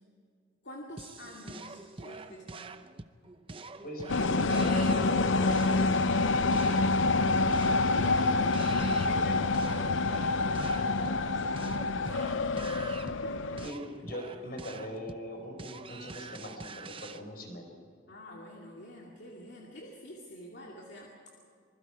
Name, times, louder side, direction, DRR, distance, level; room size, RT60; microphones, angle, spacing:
voice 1, 0.6-2.8 7.4-8.8 9.1-13.7 14.0-14.1 18.1-21.4, equal, 65° left, -2 dB, 2.5 m, -48 dB
sound 1, 1.0-17.2, right 3 dB, 30° right, 0.7 m, -46 dB
voice 2, 3.8-5.9 8.0-8.4 8.6-9.5 13.6-17.8, equal, 50° left, 3 dB, 4.8 m, -40 dB
sound 2, 4.1-13.7, left 3 dB, 85° left, 0.6 m, -27 dB
26.5 x 20.5 x 4.9 m, 2.2 s
head